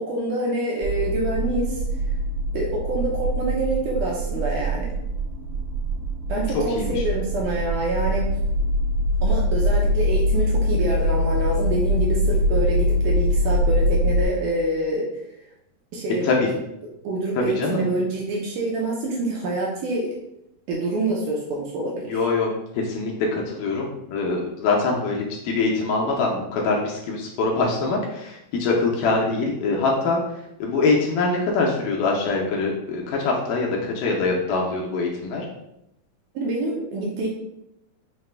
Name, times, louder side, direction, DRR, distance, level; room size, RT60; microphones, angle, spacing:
voice 1, 0.0-1.8 2.5-4.9 6.3-8.3 9.2-15.1 15.9-16.3 17.0-20.2 20.7-22.3 36.4-37.3, right 2 dB, 80° right, -2 dB, 1.9 m, -26 dB
sound 1, 0.8-14.2, equal, 45° right, 1.2 m, -23 dB
voice 2, 17.4-17.9 22.1-22.5 22.8-30.2 30.6-35.5, left 3 dB, 80° left, -1 dB, 2.0 m, -23 dB
5.8 x 2.2 x 3.2 m, 0.83 s
omnidirectional pair, 4.1 m